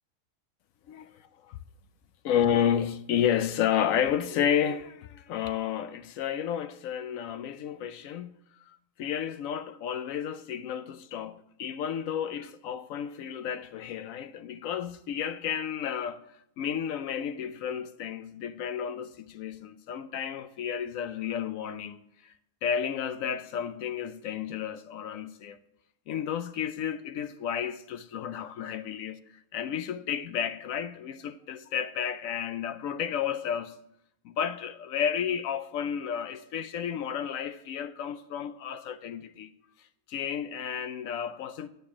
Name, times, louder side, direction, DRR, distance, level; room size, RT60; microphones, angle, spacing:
voice 1, 2.2-8.4 8.7-16.2 16.6-22.3 22.6-25.6 26.1-29.2 29.5-33.8 34.2-39.5 40.1-41.7, left 8 dB, 70° left, 0.9 m, -31 dB
9.4 x 6.7 x 5.9 m
omnidirectional pair, 1.7 m